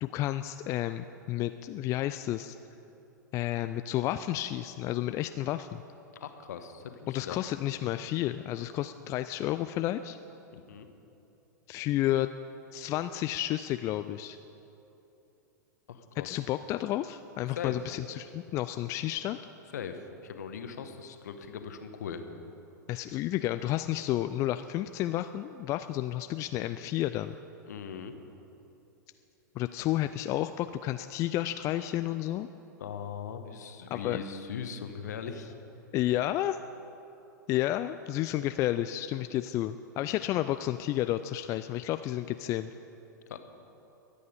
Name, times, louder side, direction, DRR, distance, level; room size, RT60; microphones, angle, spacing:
voice 1, 0.0-2.6 3.3-5.8 7.1-10.2 11.7-12.3 12.7-14.4 16.2-19.4 22.9-27.3 29.6-32.5 33.9-34.2 35.9-36.6 37.5-42.7, left 14 dB, 30° left, 11 dB, 0.3 m, -31 dB
voice 2, 6.2-7.4 10.5-10.9 15.9-16.3 17.5-17.8 19.7-22.2 27.7-28.2 32.8-35.5 43.3-43.4, left 7 dB, 60° left, 8 dB, 1.1 m, -40 dB
22.5 x 8.5 x 5.2 m, 3.0 s
figure-of-eight pair, 95°, 10 cm